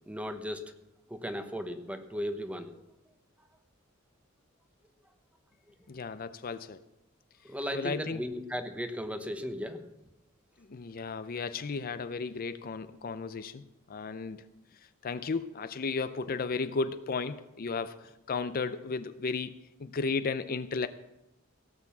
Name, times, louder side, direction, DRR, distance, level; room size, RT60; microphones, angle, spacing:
voice 1, 0.1-0.7 1.1-2.8 7.4-9.9, equal, 5° right, 8 dB, 1.0 m, -36 dB
voice 2, 5.9-6.8 7.7-8.2 10.7-14.4 15.0-20.9, left 4 dB, 45° left, 12 dB, 0.5 m, -34 dB
17.5 x 6.8 x 7.1 m, 0.92 s
head